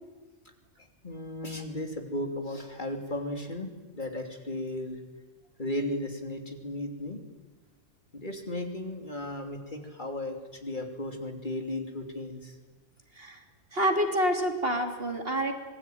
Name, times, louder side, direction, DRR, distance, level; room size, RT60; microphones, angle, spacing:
voice 1, 1.0-5.0 5.6-7.2 8.1-12.6, left 1 dB, 45° left, 4 dB, 3.3 m, -35 dB
voice 2, 13.7-15.5, equal, 55° right, 4 dB, 3.4 m, -27 dB
26.0 x 20.0 x 9.4 m, 1.2 s
omnidirectional pair, 1.2 m